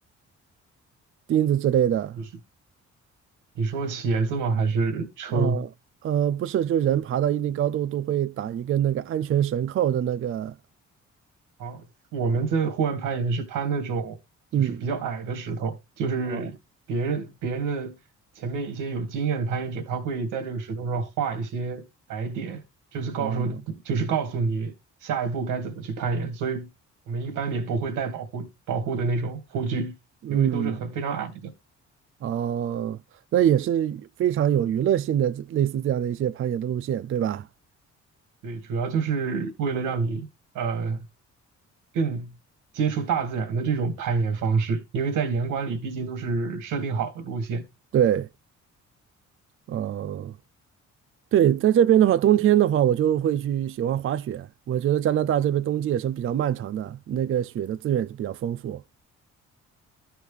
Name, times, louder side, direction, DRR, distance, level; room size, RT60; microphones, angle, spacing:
voice 1, 1.3-2.2 5.3-5.7 6.0-10.5 14.5-14.8 16.3-16.4 23.2-23.5 30.3-30.8 32.2-33.0 33.3-37.5 47.9-48.3 49.7-50.3 51.3-58.8, right 10 dB, 45° right, 0.4 m, -24 dB
voice 2, 3.6-5.6 11.6-11.8 12.1-14.2 14.6-16.6 16.9-17.9 18.4-21.8 22.1-22.6 22.9-24.7 25.0-26.7 27.1-29.9 30.3-31.5 38.4-40.3 40.5-41.1 41.9-42.3 42.7-47.6, right 5 dB, 90° right, 2.3 m, -28 dB
13.5 x 4.7 x 3.4 m
cardioid pair, 90°, 30 cm